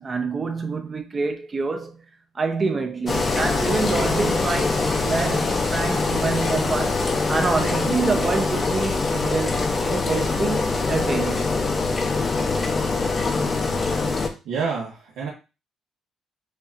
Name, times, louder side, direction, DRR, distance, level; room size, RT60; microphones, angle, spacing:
voice 1, 0.0-2.0 2.3-11.5, right 4 dB, 20° right, 0.6 m, -27 dB
Engine, 3.1-14.3, left 3 dB, 25° left, 0.6 m, -23 dB
voice 2, 14.4-15.3, right 5 dB, 80° right, 1.1 m, -28 dB
6.6 x 2.7 x 2.5 m
cardioid pair, 175°, 0 cm